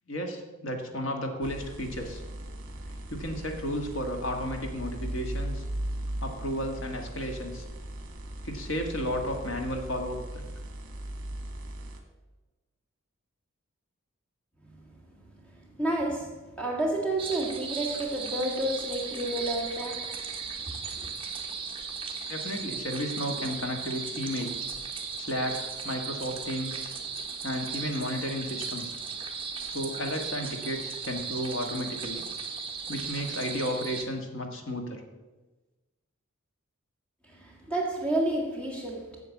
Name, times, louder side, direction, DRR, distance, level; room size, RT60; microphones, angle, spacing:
voice 1, 0.1-2.2 3.1-5.6 6.2-7.6 8.4-10.4 22.3-24.6 25.2-26.8 27.4-29.0 29.6-32.2 32.9-35.0, equal, 60° left, 1.5 m, -33 dB
sound 1, 1.4-12.0, right 1 dB, 55° right, 1.4 m, -38 dB
voice 2, 15.8-20.1 37.4-39.1, right 1 dB, 5° left, 1.7 m, -30 dB
sound 2, 17.2-34.0, right 5 dB, 25° right, 1.1 m, -36 dB
8.2 x 7.2 x 7.1 m
head